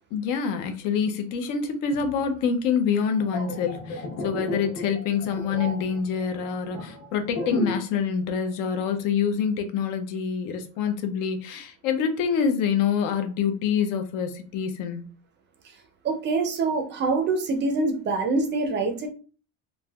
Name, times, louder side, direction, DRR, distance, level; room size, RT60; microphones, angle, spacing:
voice 1, 0.1-15.0, left 6 dB, 75° left, 0.6 m, -26 dB
sound 1, 3.2-8.0 8.2-8.5, left 2 dB, 40° left, 0.8 m, -33 dB
voice 2, 16.0-19.1, right 3 dB, 35° right, 0.4 m, -25 dB
3.2 x 2.5 x 2.3 m
cardioid pair, 170°, 33 cm